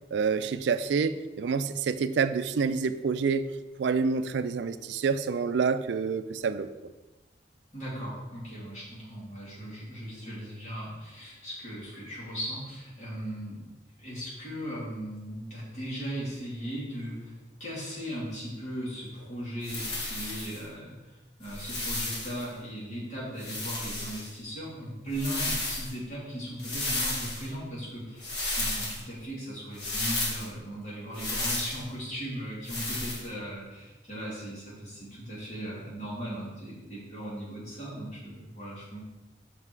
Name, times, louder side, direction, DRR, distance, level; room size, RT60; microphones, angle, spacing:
voice 1, 0.1-3.5 3.8-6.7, right 5 dB, 75° right, 12 dB, 0.4 m, -27 dB
voice 2, 7.7-13.7 14.0-17.3 17.6-39.0, equal, 40° left, -6 dB, 2.6 m, -38 dB
sound 1, 19.6-20.6 21.4-22.4 23.4-24.3 25.1-25.9 26.6-27.5 28.2-29.0 29.7-30.5 31.1-31.8 32.6-33.2, left 2 dB, 65° left, 1.6 m, -33 dB
5.7 x 5.6 x 4.7 m, 1.1 s
head